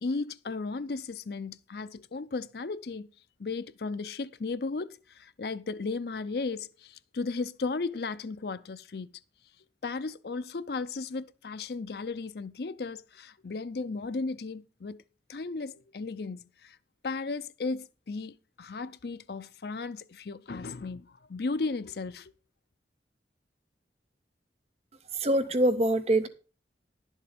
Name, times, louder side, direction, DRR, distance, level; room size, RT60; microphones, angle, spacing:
voice 1, 0.0-3.1 3.4-9.2 9.8-15.0 15.3-16.8 17.0-22.3, left 3 dB, 60° left, 0.5 m, -35 dB
voice 2, 25.1-26.3, right 1 dB, 35° right, 0.6 m, -24 dB
11.0 x 7.3 x 5.1 m
head